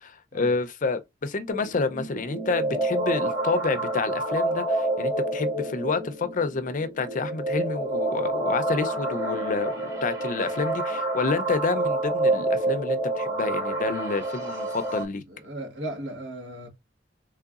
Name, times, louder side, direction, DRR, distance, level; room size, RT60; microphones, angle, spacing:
voice 1, 0.0-9.7 10.0-15.2, left 4 dB, 45° left, 0.5 m, -29 dB
sound 1, 1.5-15.0, right 2 dB, 20° right, 1.8 m, -28 dB
voice 2, 15.3-16.7, right 1 dB, 85° right, 1.3 m, -36 dB
3.8 x 3.2 x 2.4 m
head